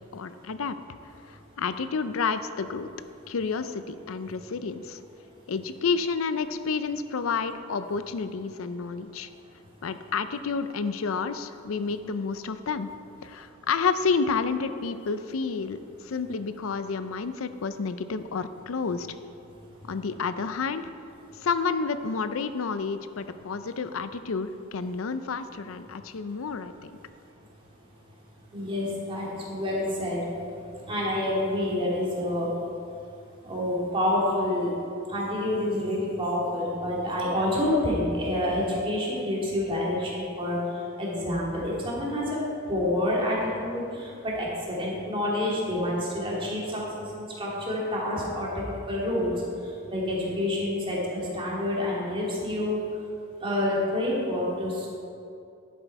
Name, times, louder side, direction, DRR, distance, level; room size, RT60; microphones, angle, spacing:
voice 1, 0.1-0.8 1.3-2.9 3.3-5.0 5.5-9.3 9.8-12.9 13.2-19.1 19.9-20.9 21.3-27.0, left 5 dB, 75° left, 11 dB, 0.5 m, -30 dB
voice 2, 28.5-30.2 30.8-32.5 33.4-34.7 35.1-40.6 41.0-42.4 42.7-46.8 47.1-49.3 49.6-52.8 53.4-54.9, left 1 dB, 25° right, -5 dB, 2.4 m, -28 dB
11.0 x 7.6 x 4.6 m, 2.5 s
head